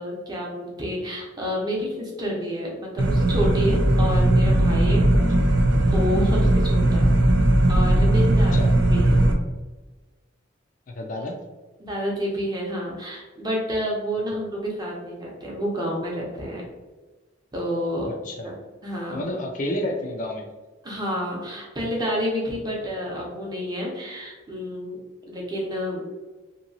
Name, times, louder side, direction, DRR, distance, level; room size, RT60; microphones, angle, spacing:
voice 1, 0.0-5.0 5.7-7.2 7.7-8.6 8.9-9.2 11.8-16.6 17.5-18.1 18.4-18.5 18.8-19.2 20.8-25.0 25.3-26.0, equal, 20° right, -3 dB, 0.7 m, -29 dB
sound 1, 3.0-9.3, right 1 dB, 65° right, 0.5 m, -18 dB
voice 2, 10.9-11.4 18.1-18.5 19.1-20.4, left 1 dB, 40° left, 1 dB, 0.3 m, -30 dB
2.9 x 2.7 x 2.6 m, 1.2 s
head